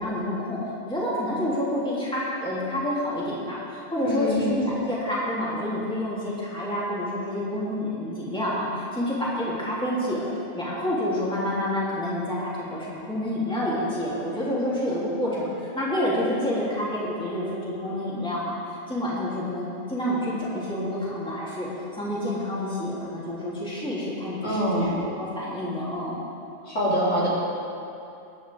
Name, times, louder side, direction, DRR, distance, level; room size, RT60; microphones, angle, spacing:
voice 1, 0.0-10.2 10.5-26.2, left 1 dB, 5° left, -8 dB, 3.1 m, -28 dB
voice 2, 4.0-4.5 24.4-25.0 26.6-27.3, equal, 75° left, -9 dB, 4.3 m, -25 dB
21.5 x 11.0 x 3.6 m, 2.7 s
omnidirectional pair, 1.3 m